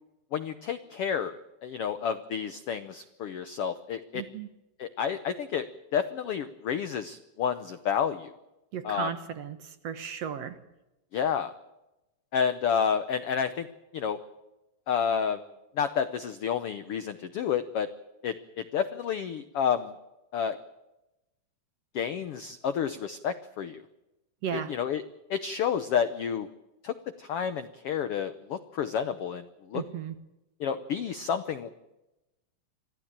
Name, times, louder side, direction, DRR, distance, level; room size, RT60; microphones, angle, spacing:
voice 1, 0.3-1.4 1.6-4.2 4.8-5.6 5.9-8.3 8.8-9.1 11.1-11.5 12.3-13.7 13.9-14.2 14.9-15.5 15.8-17.9 18.2-19.9 20.3-20.6 21.9-23.8 24.5-25.0 25.3-26.5 26.8-29.8 30.6-31.7, left 7 dB, 80° left, 12 dB, 1.3 m, -30 dB
voice 2, 4.1-4.5 8.7-10.6 24.4-24.7 29.7-30.1, right 8 dB, 60° right, 10 dB, 1.9 m, -35 dB
25.5 x 15.0 x 8.8 m, 0.97 s
omnidirectional pair, 3.9 m